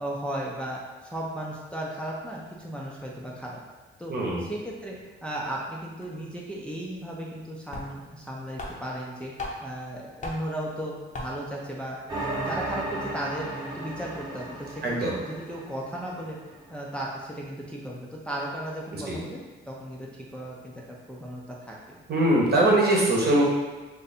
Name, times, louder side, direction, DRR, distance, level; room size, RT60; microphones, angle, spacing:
voice 1, 0.0-3.6 4.0-4.1 4.4-9.3 9.6-12.0 12.3-16.4 16.7-22.0, right 1 dB, 5° left, -4 dB, 0.5 m, -35 dB
voice 2, 4.1-4.4 14.8-15.2 19.1-19.2 22.1-23.4, right 1 dB, 55° right, -3 dB, 1.0 m, -22 dB
sound 1, 6.0-6.2 7.3-7.4 7.7-8.2 8.6-9.8 10.2-10.6 11.1-11.6, left 2 dB, 40° left, 0.8 m, -37 dB
sound 2, 12.1-16.5, right 2 dB, 20° right, 1.0 m, -35 dB
2.6 x 2.6 x 4.1 m, 1.3 s
cardioid pair, 90°, 20 cm